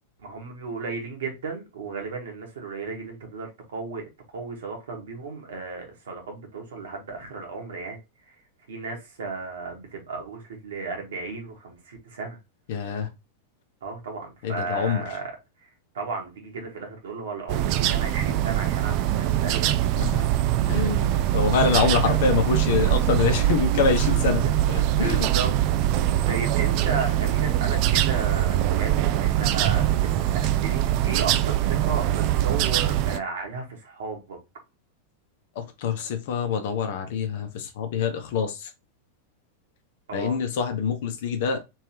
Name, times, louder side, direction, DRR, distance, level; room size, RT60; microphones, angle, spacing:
voice 1, 0.2-8.4 8.7-12.4 13.8-15.3 15.6-15.7 15.9-19.7 21.7-22.2 24.0-24.5 25.0-25.5 26.3-34.4 40.1-40.4, right 4 dB, 65° right, 1.5 m, -34 dB
voice 2, 12.7-13.1 14.4-15.0 20.0-20.2 20.7-25.3 35.5-38.7 40.1-41.6, left 6 dB, 55° left, 0.9 m, -25 dB
sound 1, 17.5-33.2, right 13 dB, 45° right, 0.4 m, -23 dB
3.6 x 3.3 x 2.9 m
figure-of-eight pair, 90°, 0 cm